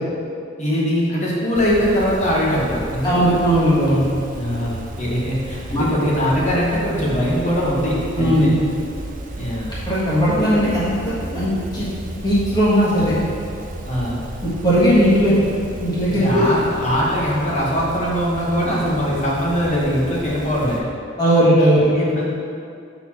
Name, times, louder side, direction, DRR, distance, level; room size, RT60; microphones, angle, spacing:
voice 1, 0.6-3.3 4.3-8.5 9.4-9.7 13.8-14.2 16.1-20.8 21.9-22.3, equal, 35° left, -5 dB, 1.3 m, -21 dB
sound 1, 1.5-20.8, right 1 dB, 40° right, 0.6 m, -34 dB
voice 2, 3.0-4.0 5.7-5.8 8.1-8.6 9.9-11.9 12.2-13.1 14.4-15.4 15.8-16.4 21.2-21.9, equal, 20° left, -10 dB, 1.6 m, -17 dB
6.0 x 4.1 x 5.9 m, 2.5 s
head